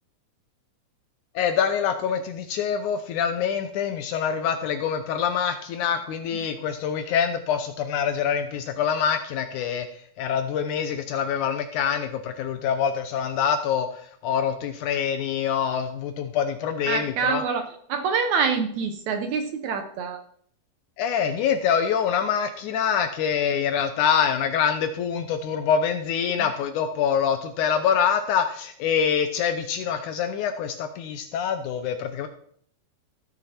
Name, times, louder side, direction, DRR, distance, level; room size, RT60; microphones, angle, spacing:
voice 1, 1.4-9.9 10.2-17.4 21.0-32.3, left 7 dB, 75° left, 8 dB, 1.9 m, -25 dB
voice 2, 16.9-20.2, right 5 dB, 70° right, 6 dB, 1.9 m, -26 dB
16.5 x 6.4 x 4.3 m, 0.62 s
omnidirectional pair, 4.1 m